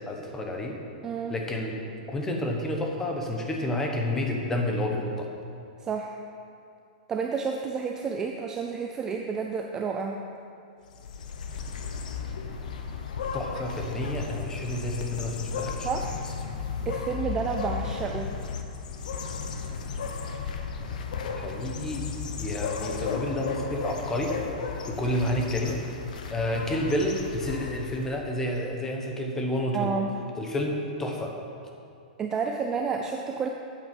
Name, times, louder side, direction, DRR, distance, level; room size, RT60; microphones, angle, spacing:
voice 1, 0.0-0.8 1.3-1.8 2.1-5.3 13.3-15.9 21.4-22.1 22.4-24.3 24.9-25.8 26.3-29.9 30.3-31.4, left 1 dB, 10° left, 1 dB, 0.9 m, -30 dB
voice 2, 1.0-1.3 5.8-6.2 7.1-10.2 15.8-16.2 16.9-18.3 29.7-30.1 32.2-33.5, right 5 dB, 15° right, 3 dB, 0.3 m, -30 dB
sound 1, 10.9-28.2, left 5 dB, 70° left, 1.0 m, -34 dB
8.4 x 8.3 x 5.4 m, 2.5 s
supercardioid pair, 170°, 4 cm